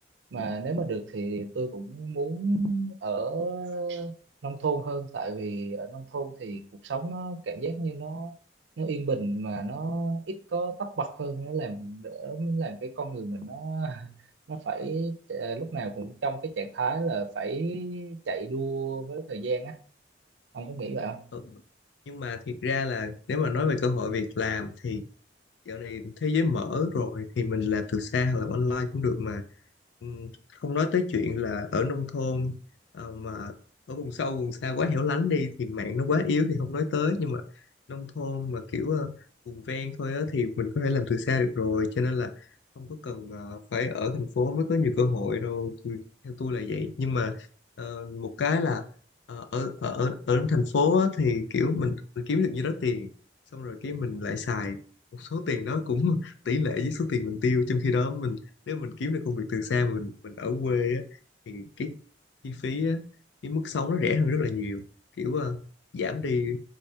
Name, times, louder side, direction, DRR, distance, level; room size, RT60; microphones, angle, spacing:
voice 1, 0.3-4.2 4.4-8.4 8.8-14.1 14.5-19.7 20.5-21.2, right 3 dB, 80° right, 0.5 m, -32 dB
voice 2, 22.1-25.0 25.7-29.4 30.0-30.3 30.6-32.5 32.9-33.5 33.9-37.4 37.9-39.1 39.5-42.3 42.8-47.3 47.8-48.8 49.3-53.1 53.5-54.8 55.1-58.4 58.7-61.0 61.5-62.0 62.4-63.0 63.4-64.8 65.2-65.6 65.9-66.6, left 4 dB, 80° left, 0.4 m, -28 dB
3.6 x 3.3 x 2.7 m
head